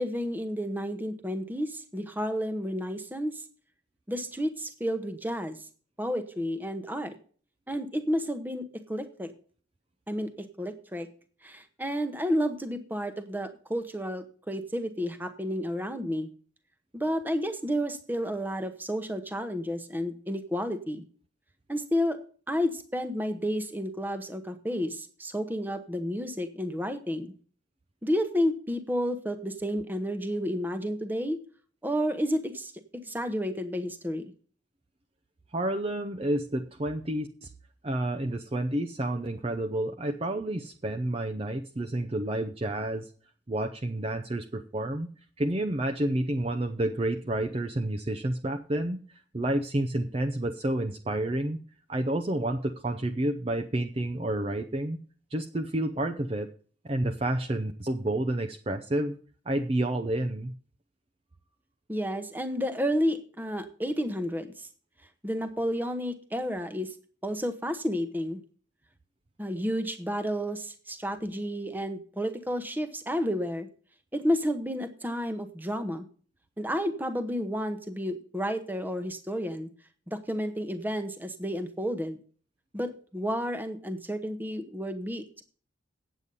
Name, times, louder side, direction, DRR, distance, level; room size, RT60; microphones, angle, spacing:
voice 1, 0.0-3.4 4.1-5.6 6.0-7.1 7.7-9.3 10.1-11.1 11.4-16.3 16.9-21.0 21.7-22.2 22.5-27.3 28.0-31.4 31.8-34.2 61.9-64.7 65.2-66.9 67.2-68.4 69.4-73.7 74.1-76.1 76.6-79.7 80.1-82.2 82.7-85.4, equal, 10° right, 9 dB, 0.9 m, -31 dB
voice 2, 35.5-37.5 37.8-43.1 43.5-45.1 45.4-49.0 49.3-51.6 51.9-55.0 55.3-56.5 56.9-59.2 59.5-60.5, right 1 dB, 30° right, 5 dB, 0.6 m, -30 dB
9.0 x 8.2 x 5.4 m, 0.43 s
head